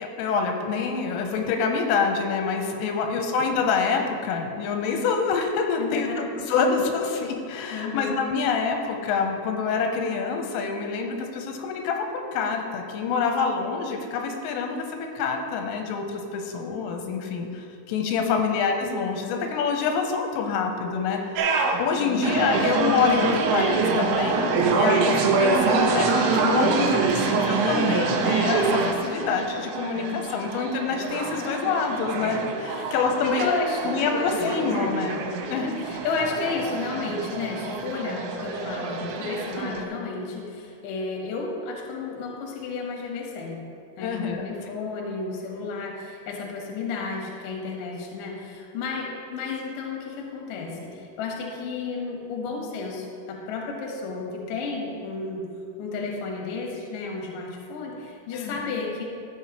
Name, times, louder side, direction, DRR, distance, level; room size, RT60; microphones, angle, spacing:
voice 1, 0.0-21.2 21.8-33.5 33.9-35.7 44.0-44.8 58.3-58.6, left 5 dB, 90° left, 3 dB, 3.3 m, -26 dB
voice 2, 3.0-3.3 5.1-5.2 5.8-6.3 7.7-8.2 18.2-18.6 22.0-22.5 28.8-29.3 32.8-32.9 33.2-34.9 35.4-43.6 44.0-55.5 55.8-59.0, left 4 dB, 70° left, -1 dB, 2.1 m, -32 dB
sound 1, 21.4-39.8, right 4 dB, 75° right, 2.8 m, -25 dB
13.5 x 7.6 x 3.1 m, 2.6 s
omnidirectional pair, 5.9 m